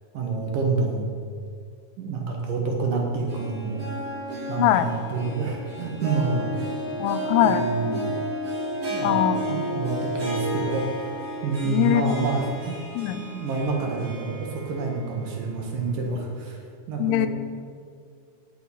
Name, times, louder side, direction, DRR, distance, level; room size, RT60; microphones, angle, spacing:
voice 1, 0.1-1.2 2.0-3.8 4.5-6.5 7.4-8.2 8.9-11.2 11.4-12.7 13.2-16.6 16.9-17.3, right 4 dB, 65° right, 0 dB, 3.1 m, -28 dB
Harp, 3.0-15.2 15.5-15.6 16.5-16.6, equal, 35° right, 3.3 m, -32 dB
voice 2, 7.0-7.7 9.0-9.4 11.7-12.2 13.0-13.2 17.0-17.3, left 13 dB, 90° left, 11 dB, 2.6 m, -21 dB
17.5 x 6.6 x 5.7 m, 2.3 s
omnidirectional pair, 4.5 m